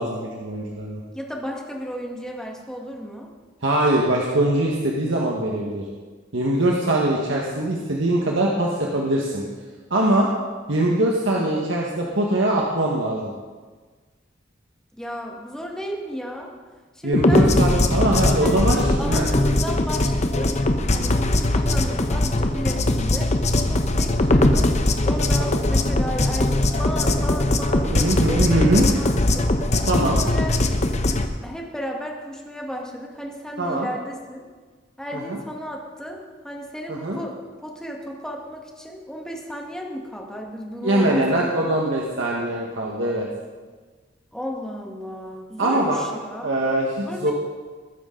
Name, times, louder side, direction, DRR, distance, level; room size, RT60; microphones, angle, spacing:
voice 1, 0.0-1.0 3.6-5.8 6.3-9.4 9.9-10.3 10.7-13.3 17.0-19.2 20.9-21.3 24.0-24.1 25.5-25.6 27.9-28.8 29.9-30.2 33.6-33.9 35.1-35.4 36.9-37.2 40.8-43.3 45.6-46.0 46.4-47.3, right 1 dB, 90° right, -2 dB, 1.6 m, -22 dB
voice 2, 1.1-3.3 14.9-16.5 16.9-17.5 18.4-20.5 20.9-23.3 23.7-24.7 25.0-29.5 30.1-30.6 31.4-34.4 35.0-37.4 37.6-41.7 44.3-46.5 47.0-47.3, equal, 5° left, 0 dB, 1.8 m, -33 dB
sound 1, 17.1-31.3, left 1 dB, 40° left, 0.9 m, -20 dB
20.0 x 10.0 x 4.0 m, 1.4 s
head